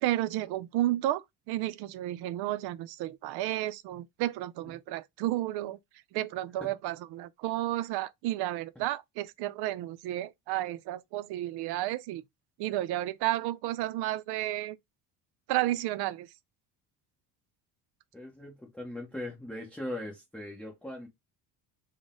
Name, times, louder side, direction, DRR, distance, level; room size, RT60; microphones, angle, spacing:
voice 1, 0.0-5.8 6.1-12.2 12.6-14.8 15.5-16.3, right 15 dB, 70° right, 0.5 m, -32 dB
voice 2, 18.1-21.1, left 1 dB, 5° left, 0.9 m, -40 dB
3.9 x 2.2 x 3.7 m
cardioid pair, 135°, 40 cm